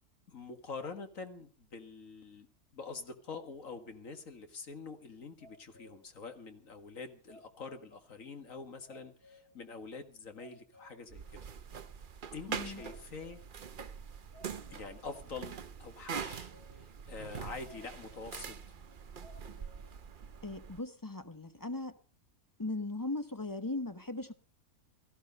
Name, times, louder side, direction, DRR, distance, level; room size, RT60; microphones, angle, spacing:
voice 1, 0.3-2.5 2.7-11.4 12.3-13.4 14.7-18.6, left 4 dB, 55° left, 7 dB, 2.1 m, -46 dB
sound 1, 5.4-6.2 6.5-6.6 7.3-8.1 8.5-8.6 8.9-9.7 10.0-10.1 10.4-11.2 11.5-11.6 12.3-12.5 12.8-13.6 14.3-15.1 16.1-16.9 17.7-18.4 18.8-18.9 19.2-19.9 20.3-20.4, left 1 dB, 60° right, 4.1 m, -59 dB
sound 2, 11.1-20.8, right 6 dB, 45° right, 0.7 m, -44 dB
voice 2, 12.5-12.8 20.4-22.0 22.6-24.3, left 2 dB, 20° left, 9 dB, 0.6 m, -38 dB
17.0 x 13.5 x 5.3 m, 0.41 s
omnidirectional pair, 1.7 m